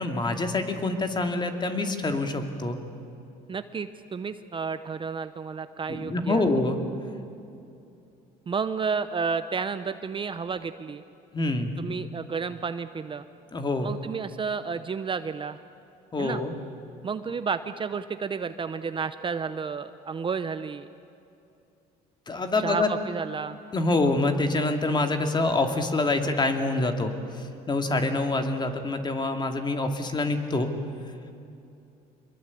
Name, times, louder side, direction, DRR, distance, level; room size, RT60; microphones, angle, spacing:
voice 1, 0.0-2.8 5.9-6.8 11.3-11.7 13.5-13.9 16.1-16.5 22.3-22.9 23.7-27.1 27.7-30.7, left 2 dB, 25° left, 5 dB, 2.5 m, -26 dB
voice 2, 3.5-6.5 8.5-11.0 11.8-13.2 13.8-15.6 16.2-16.4 17.0-20.9 22.6-23.6, right 5 dB, 30° right, 11 dB, 0.8 m, -31 dB
25.5 x 22.0 x 8.5 m, 2.7 s
cardioid pair, 110°, 17 cm